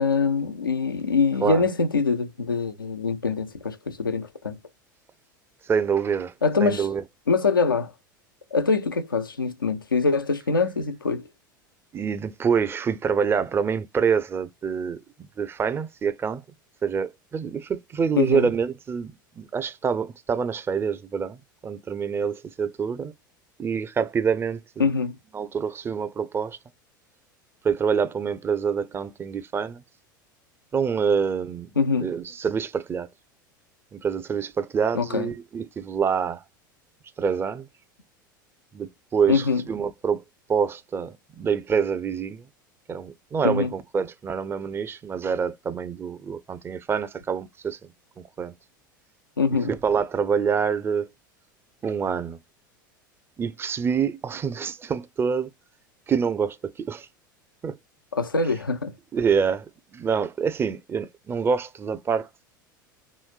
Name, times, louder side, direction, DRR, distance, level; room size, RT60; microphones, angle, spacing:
voice 1, 0.0-4.6 6.4-6.9 7.3-7.9 8.5-11.3 18.2-18.5 24.8-25.2 31.8-32.1 34.9-35.3 39.3-39.6 43.4-43.7 49.4-49.7 58.1-58.9, left 4 dB, 85° left, 0.5 m, -24 dB
voice 2, 5.6-6.3 6.6-7.0 11.9-15.0 15.4-16.4 16.8-23.1 23.6-24.9 25.3-26.6 27.6-29.8 30.7-31.7 32.0-33.1 33.9-36.4 37.2-37.7 38.7-40.2 40.5-42.5 42.9-48.5 49.5-51.1 51.8-52.4 53.4-55.5 56.1-57.1 57.6-57.8 59.1-59.7 59.9-62.3, right 6 dB, 20° right, 0.5 m, -26 dB
3.1 x 3.1 x 2.3 m
figure-of-eight pair, 80°, 11 cm